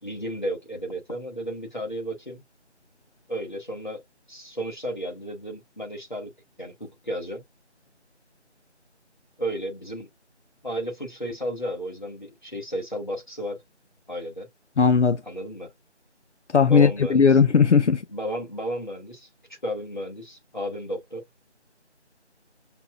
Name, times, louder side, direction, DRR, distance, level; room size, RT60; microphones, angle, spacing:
voice 1, 0.0-2.4 3.3-6.3 6.6-7.4 9.4-10.1 10.6-13.6 14.1-14.5 15.2-15.7 16.6-17.4 17.8-21.2, equal, 40° left, 1.6 m, -33 dB
voice 2, 14.8-15.2 16.5-18.0, left 6 dB, 75° left, 0.6 m, -17 dB
6.7 x 2.5 x 2.2 m
figure-of-eight pair, 180°, 35 cm